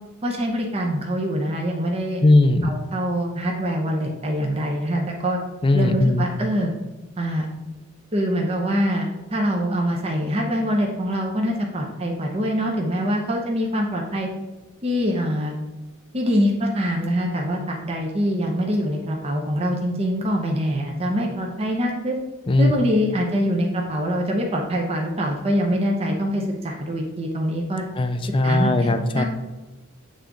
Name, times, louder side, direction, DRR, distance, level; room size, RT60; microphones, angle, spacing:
voice 1, 0.2-2.2 2.6-5.4 5.7-6.7 7.2-7.5 8.1-14.3 14.8-15.5 16.1-22.2 22.6-27.8 28.4-28.7 29.1-29.2, equal, 30° right, 0 dB, 0.7 m, -24 dB
voice 2, 2.2-2.8 5.6-6.2 22.5-22.8 27.9-29.2, left 2 dB, 25° left, 8 dB, 0.4 m, -18 dB
7.7 x 3.5 x 3.8 m, 1.1 s
head